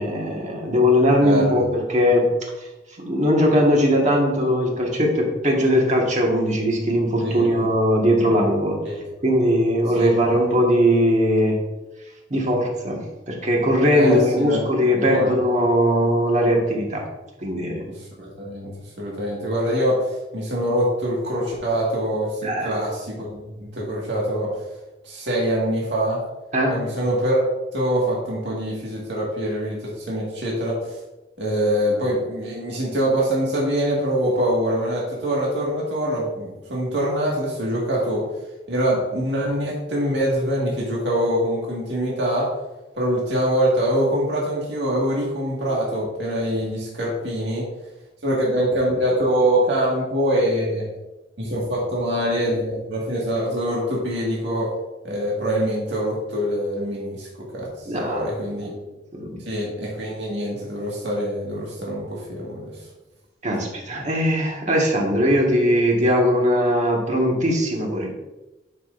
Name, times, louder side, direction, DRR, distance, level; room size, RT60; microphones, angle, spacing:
voice 1, 0.0-2.3 3.0-8.8 9.2-11.6 12.3-17.0 17.4-17.8 22.4-22.7 26.5-26.7 57.9-58.3 59.1-59.4 63.4-68.1, equal, 40° right, -1 dB, 1.7 m, -20 dB
voice 2, 1.2-1.6 7.2-7.5 8.8-9.1 10.0-10.1 13.9-14.6 15.0-15.3 17.9-24.5 25.0-26.2 26.7-27.4 27.7-31.0 31.4-38.3 38.7-42.5 43.0-47.7 48.2-50.9 51.4-54.7 55.0-58.8 59.4-62.9, equal, 70° right, -5 dB, 1.9 m, -24 dB
11.0 x 6.1 x 2.6 m, 1.0 s
head